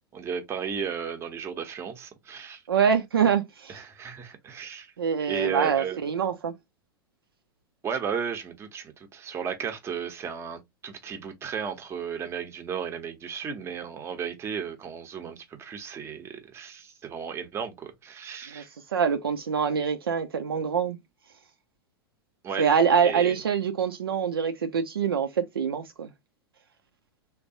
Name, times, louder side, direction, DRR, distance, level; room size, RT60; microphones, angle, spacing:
voice 1, 0.1-2.6 3.7-4.9 5.3-6.0 7.8-18.7 22.4-22.7 23.0-23.4, right 7 dB, 20° right, 0.8 m, -34 dB
voice 2, 2.7-3.8 5.0-6.5 18.5-18.6 18.9-21.0 22.6-26.1, right 7 dB, 70° right, 0.5 m, -25 dB
3.3 x 2.3 x 2.7 m
figure-of-eight pair, 90°, 13 cm